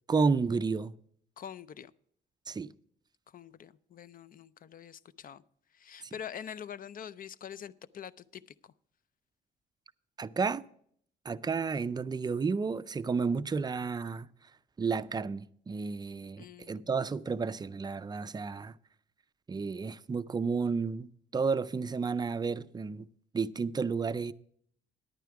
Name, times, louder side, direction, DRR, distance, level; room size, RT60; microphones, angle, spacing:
voice 1, 0.1-0.9 2.5-2.7 10.2-10.7 11.2-14.3 14.8-18.7 19.5-23.1 23.3-24.3, right 5 dB, 20° right, 0.4 m, -31 dB
voice 2, 1.4-1.9 3.3-5.4 5.7-8.7 16.4-16.9, left 8 dB, 45° left, 0.4 m, -45 dB
10.5 x 9.2 x 4.8 m
cardioid pair, 90°, 20 cm